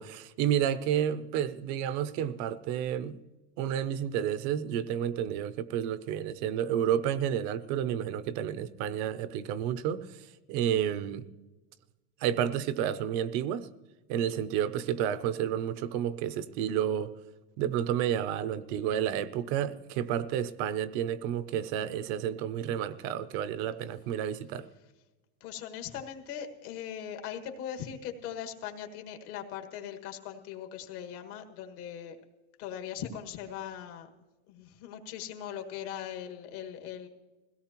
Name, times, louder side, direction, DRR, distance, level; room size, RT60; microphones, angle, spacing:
voice 1, 0.0-3.2 3.6-11.2 12.2-13.7 14.1-17.1 17.6-24.7, right 10 dB, 35° right, 0.4 m, -30 dB
voice 2, 25.4-32.2 32.6-34.1 34.5-37.1, left 9 dB, 65° left, 1.9 m, -40 dB
21.5 x 17.0 x 2.9 m
supercardioid pair, 155°, 48 cm